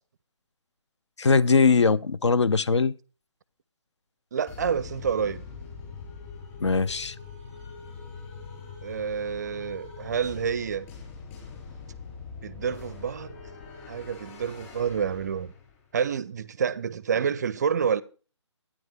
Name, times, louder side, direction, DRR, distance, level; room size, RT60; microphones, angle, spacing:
voice 1, 1.2-2.9 6.6-7.1, left 4 dB, 70° left, 0.5 m, -21 dB
voice 2, 4.3-5.4 8.8-10.9 12.4-13.4 13.9-15.5 15.9-18.0, right 7 dB, 35° right, 0.4 m, -28 dB
sound 1, 4.5-15.9, left 5 dB, 30° left, 4.3 m, -43 dB
12.0 x 9.6 x 3.5 m
figure-of-eight pair, 140°, 15 cm